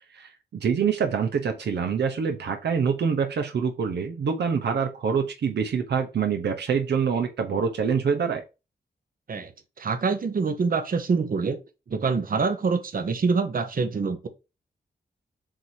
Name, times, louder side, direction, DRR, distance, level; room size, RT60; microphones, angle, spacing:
voice 1, 0.1-8.4, right 6 dB, 75° right, 0.9 m, -25 dB
voice 2, 9.8-11.6 11.9-14.3, right 4 dB, 55° right, 1.1 m, -25 dB
7.6 x 2.8 x 4.7 m
cardioid pair, 80°, 18 cm